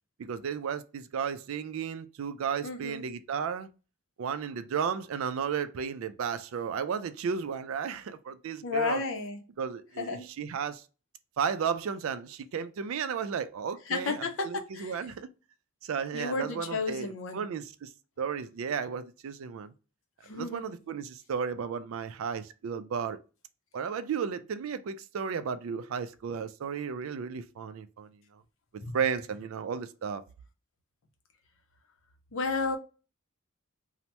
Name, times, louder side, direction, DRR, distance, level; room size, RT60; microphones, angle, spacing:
voice 1, 0.2-3.7 4.2-9.0 9.6-10.8 11.4-15.3 15.8-17.1 17.3-17.9 18.2-19.7 20.3-23.2 23.7-28.1 28.9-30.2, right 6 dB, 70° right, 0.3 m, -34 dB
voice 2, 2.6-3.1 8.6-9.4 10.0-10.3 13.9-15.1 16.1-17.4 20.2-20.7 28.8-29.0 32.3-32.8, left 4 dB, 65° left, 0.5 m, -33 dB
2.8 x 2.0 x 3.2 m
head